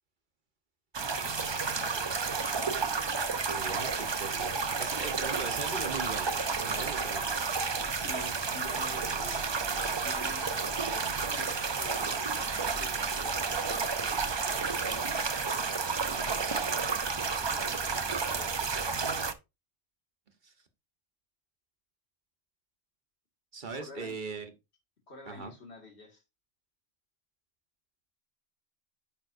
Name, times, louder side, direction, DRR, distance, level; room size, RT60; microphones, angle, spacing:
sound 1, 0.9-19.3, right 5 dB, 35° right, 0.5 m, -31 dB
voice 1, 1.2-2.6 3.1-3.9 4.7-5.1 7.9-9.6 10.0-14.4 16.1-16.8 17.4-18.7 23.7-24.2 25.1-26.2, left 4 dB, 80° left, 2.4 m, -50 dB
voice 2, 3.5-6.3 6.6-7.3 20.4-20.5 23.5-24.5 25.3-25.5, right 4 dB, 50° right, 1.2 m, -39 dB
9.4 x 5.7 x 2.6 m
omnidirectional pair, 1.1 m